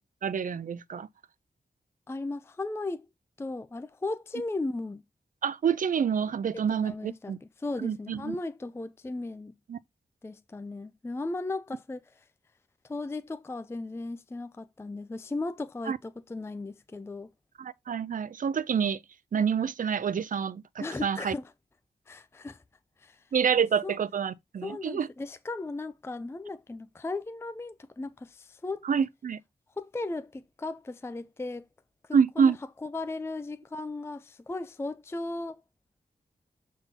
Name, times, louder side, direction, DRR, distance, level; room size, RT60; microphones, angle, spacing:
voice 1, 0.2-1.1 5.4-7.4 7.8-8.4 9.7-9.8 15.9-16.0 17.6-19.0 19.3-21.3 23.3-25.1 28.8-29.4 32.1-32.6, right 7 dB, 55° right, 0.5 m, -27 dB
voice 2, 2.1-3.1 3.4-5.0 6.7-7.3 7.6-9.5 10.2-12.2 12.8-17.3 20.8-21.5 22.1-22.6 23.0-23.2 23.8-24.0 24.6-28.9 29.8-31.7 32.1-32.6 32.8-35.6, left 2 dB, 15° left, 0.4 m, -36 dB
6.9 x 3.7 x 4.0 m
wide cardioid pair, 125°, 17 cm